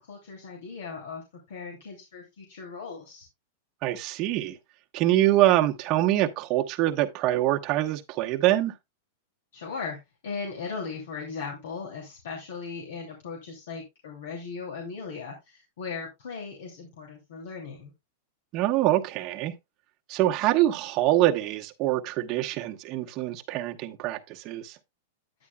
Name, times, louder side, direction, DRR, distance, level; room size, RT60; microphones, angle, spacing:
voice 1, 0.1-3.3 9.5-10.0 10.2-17.9, left 5 dB, 80° left, 2.7 m, -38 dB
voice 2, 3.8-4.6 4.9-8.7 18.5-19.5 20.1-24.8, right 14 dB, 40° right, 1.1 m, -24 dB
9.7 x 9.6 x 2.3 m
supercardioid pair, 135°, 0 cm